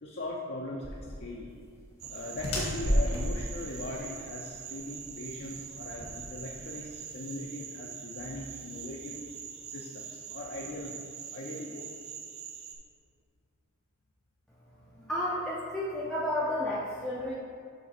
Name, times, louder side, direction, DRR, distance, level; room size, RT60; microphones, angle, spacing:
voice 1, 0.0-1.5 2.1-11.0 11.3-11.8, left 1 dB, 50° left, -3 dB, 0.6 m, -40 dB
sound 1, 0.8-6.9, equal, 80° left, 1.7 m, -33 dB
sound 2, 2.0-12.7, right 8 dB, 75° right, 0.7 m, -44 dB
voice 2, 14.9-17.3, left 1 dB, 5° left, -7 dB, 0.6 m, -32 dB
6.6 x 3.8 x 5.9 m, 2.2 s
head